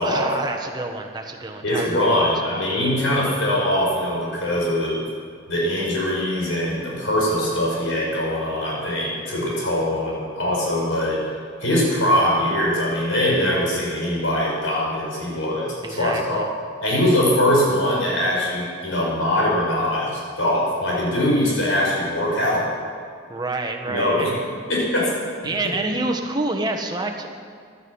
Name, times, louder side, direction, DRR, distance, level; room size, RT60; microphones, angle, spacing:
voice 1, 0.0-2.3 15.8-16.5 23.3-24.3 25.4-27.3, right 2 dB, 20° right, 3 dB, 1.3 m, -27 dB
voice 2, 1.6-5.0 5.5-11.3 11.6-16.4 16.8-22.7 23.9-24.3 24.7-25.1, left 1 dB, 90° left, -4 dB, 5.5 m, -22 dB
16.0 x 11.5 x 7.1 m, 2.1 s
head